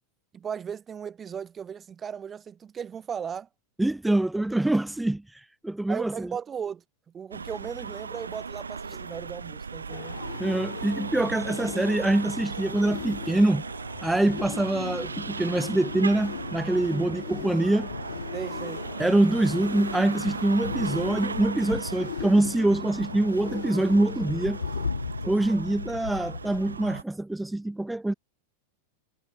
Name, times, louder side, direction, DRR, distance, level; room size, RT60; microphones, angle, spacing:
voice 1, 0.3-3.5 4.3-4.4 5.9-6.8 7.1-10.2 16.9-17.1 18.3-18.8 25.2-25.7, right 7 dB, 20° right, 2.2 m, -36 dB
voice 2, 3.8-6.3 10.4-13.6 14.0-17.9 19.0-24.6 25.3-28.1, right 1 dB, 5° right, 1.3 m, -25 dB
sound 1, 7.3-27.0, right 5 dB, 75° right, 2.7 m, -37 dB
sound 2, 9.9-24.9, left 13 dB, 60° left, 5.8 m, -40 dB
Thunder, 14.4-27.0, left 5 dB, 75° left, 3.7 m, -39 dB
figure-of-eight pair, 90°, 0 cm